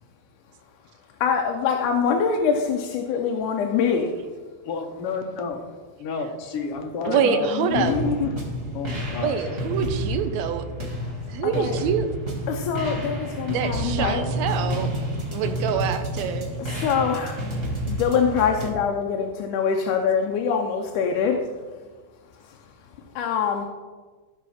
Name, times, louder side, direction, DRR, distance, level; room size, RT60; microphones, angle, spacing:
voice 1, 1.2-4.1 7.3-7.4 7.6-8.3 11.6-11.8 12.5-14.2 16.8-17.3 17.9-21.4 23.2-23.7, left 6 dB, 85° left, 2 dB, 2.3 m, -24 dB
voice 2, 4.6-5.6 6.0-8.4 8.7-9.3, left 4 dB, 65° left, 5 dB, 1.5 m, -31 dB
voice 3, 7.0-7.9 9.2-10.6 11.3-12.1 13.5-14.9 15.3-16.5, right 7 dB, 75° right, 9 dB, 1.8 m, -25 dB
sound 1, 7.7-18.7, equal, 25° right, 1.3 m, -30 dB
14.5 x 5.5 x 4.2 m, 1.4 s
omnidirectional pair, 3.5 m